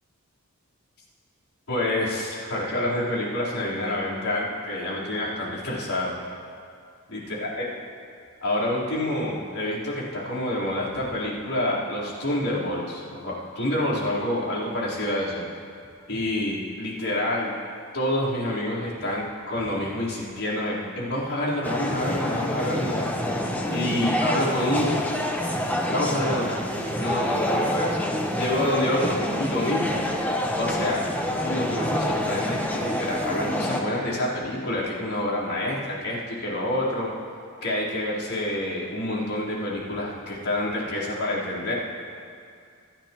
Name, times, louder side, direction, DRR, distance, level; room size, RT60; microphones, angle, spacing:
voice 1, 1.7-6.2 7.1-7.7 8.4-15.4 16.1-17.5 17.9-23.1 23.7-25.0 25.9-26.6 27.0-28.0 28.3-30.1 30.6-31.0 31.4-37.1 37.6-41.7, left 1 dB, 85° left, -8 dB, 3.9 m, -27 dB
sound 1, 21.6-33.8, left 1 dB, 10° left, 1.0 m, -27 dB
26.5 x 10.0 x 3.0 m, 2.3 s
head